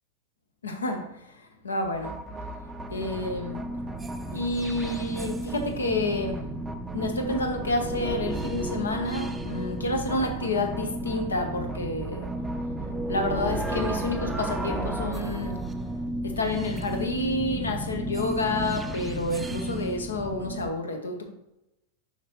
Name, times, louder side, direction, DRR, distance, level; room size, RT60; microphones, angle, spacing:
voice 1, 0.6-2.2 2.9-3.6 4.3-6.4 6.9-12.3 13.1-15.6 16.2-21.3, left 2 dB, 70° left, 0.9 m, -29 dB
sound 1, 1.8-20.7, right 2 dB, 10° right, 0.5 m, -33 dB
6.9 x 5.2 x 3.1 m
figure-of-eight pair, 90°, 0 cm